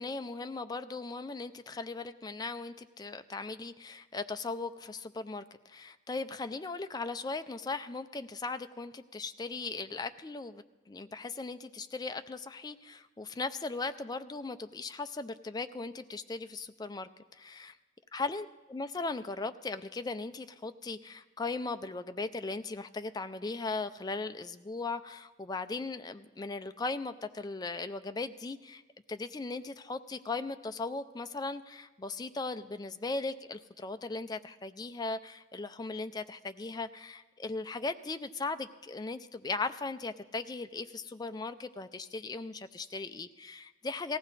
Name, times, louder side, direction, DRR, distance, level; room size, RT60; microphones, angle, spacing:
voice 1, 0.0-17.8 18.1-28.8 29.1-44.2, left 3 dB, 20° left, 10 dB, 0.4 m, -38 dB
18.5 x 15.0 x 4.1 m, 1.2 s
head